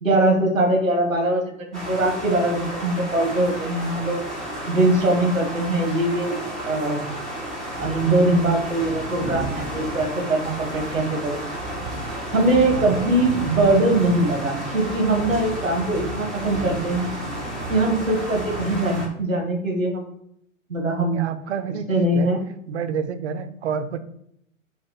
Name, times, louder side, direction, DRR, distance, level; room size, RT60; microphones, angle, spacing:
voice 1, 0.0-4.2 4.6-6.4 6.7-7.0 7.8-11.4 12.3-17.1 17.7-20.1 20.7-21.2 21.9-22.4, right 2 dB, 85° right, 2 dB, 1.0 m, -22 dB
sound 1, 1.7-19.1, right 1 dB, ahead, 0.3 m, -31 dB
voice 2, 21.0-22.3 22.7-24.0, right 7 dB, 60° right, 10 dB, 0.5 m, -29 dB
4.2 x 2.1 x 3.8 m, 0.71 s
figure-of-eight pair, 95°, 39 cm